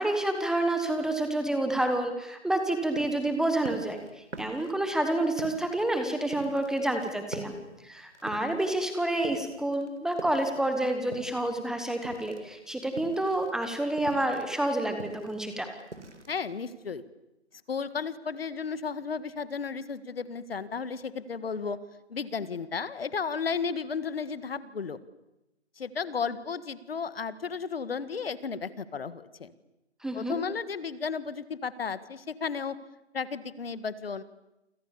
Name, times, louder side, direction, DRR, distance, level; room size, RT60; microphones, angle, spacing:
voice 1, 0.0-7.6 7.8-15.7 30.0-30.4, right 1 dB, ahead, 6 dB, 1.1 m, -29 dB
sound 1, 2.6-11.7 11.9-16.9, right 2 dB, 85° right, 4.5 m, -44 dB
voice 2, 16.3-17.0 17.7-21.8 22.1-25.0 25.8-29.5 30.1-32.8 33.1-34.2, left 5 dB, 55° left, 15 dB, 1.8 m, -33 dB
28.5 x 26.5 x 7.1 m, 0.93 s
figure-of-eight pair, 145°, 34 cm